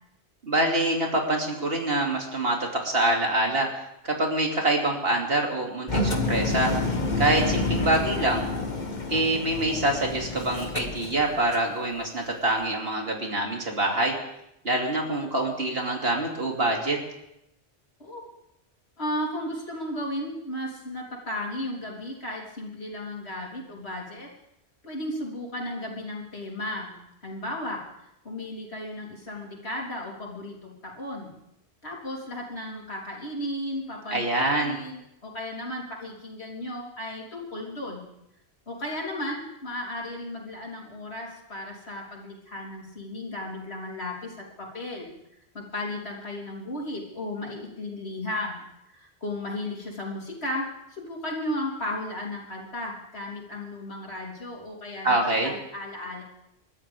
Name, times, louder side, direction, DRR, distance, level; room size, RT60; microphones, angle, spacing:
voice 1, 0.4-3.7 4.0-6.7 7.2-8.4 9.1-14.1 14.6-17.0 34.1-34.8 55.0-55.5, right 2 dB, 65° right, 0 dB, 3.0 m, -25 dB
Engine, 5.9-11.7, left 2 dB, 45° left, 1.6 m, -28 dB
voice 2, 19.0-24.3 24.8-27.8 28.2-31.3 31.8-38.0 38.7-45.1 45.5-48.6 48.9-56.2, left 1 dB, 80° left, -2 dB, 3.9 m, -35 dB
29.5 x 13.0 x 3.6 m, 0.82 s
omnidirectional pair, 1.1 m